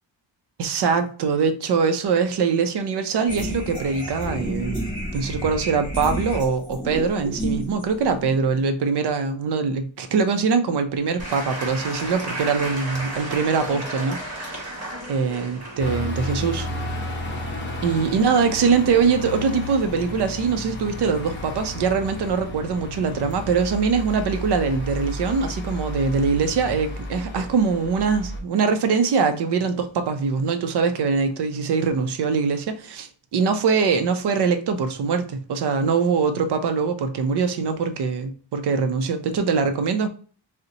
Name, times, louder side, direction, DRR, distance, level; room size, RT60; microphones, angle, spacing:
voice 1, 0.6-4.8 5.1-14.7 15.1-16.7 17.8-40.1, right 5 dB, 60° right, 0.5 m, -23 dB
sound 1, 3.2-8.6, equal, 10° right, 1.3 m, -31 dB
Applause / Crowd, 11.2-17.5, right 1 dB, 35° right, 0.9 m, -33 dB
sound 2, 15.8-28.4, left 1 dB, 25° left, 0.7 m, -32 dB
3.8 x 2.1 x 2.7 m
wide cardioid pair, 165°, 46 cm